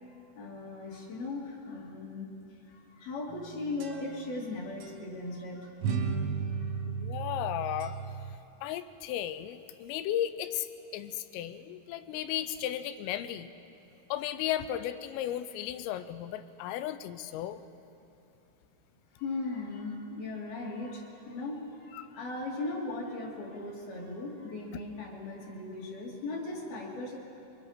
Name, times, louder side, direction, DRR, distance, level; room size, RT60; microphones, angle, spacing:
voice 1, 0.1-5.8 6.5-6.9 19.1-27.2, left 2 dB, 55° left, -2 dB, 3.8 m, -38 dB
sound 1, 3.3-4.5 4.8-5.0 5.8-8.4, right 5 dB, 90° right, 4.3 m, -35 dB
voice 2, 6.9-8.0 8.6-10.7 10.9-13.5 14.1-17.6 21.9-22.0, left 11 dB, 85° left, 12 dB, 3.3 m, -35 dB
24.5 x 22.5 x 5.7 m, 2.7 s
omnidirectional pair, 5.9 m